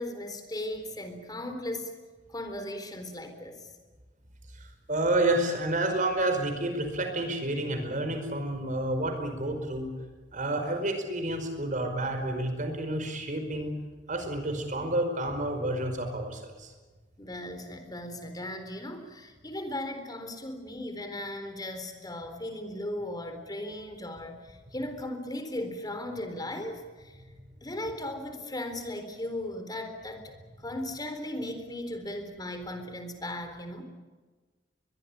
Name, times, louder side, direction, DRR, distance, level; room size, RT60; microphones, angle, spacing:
voice 1, 0.0-1.9 2.3-3.7 17.2-27.2 27.6-33.8, left 1 dB, 20° left, 7 dB, 3.9 m, -37 dB
voice 2, 4.6-9.9 10.3-13.7 14.1-16.7, right 1 dB, 45° right, 6 dB, 5.1 m, -29 dB
23.0 x 21.5 x 8.7 m, 1.3 s
head